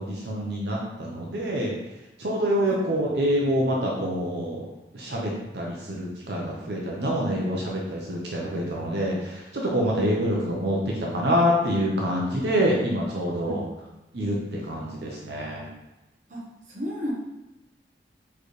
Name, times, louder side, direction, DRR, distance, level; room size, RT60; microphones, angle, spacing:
voice 1, 0.0-1.7 2.2-4.7 4.9-13.6 14.1-15.7, equal, 75° right, -3 dB, 0.8 m, -26 dB
voice 2, 16.3-17.1, equal, 45° right, -3 dB, 1.0 m, -33 dB
4.4 x 3.3 x 3.2 m, 1.0 s
head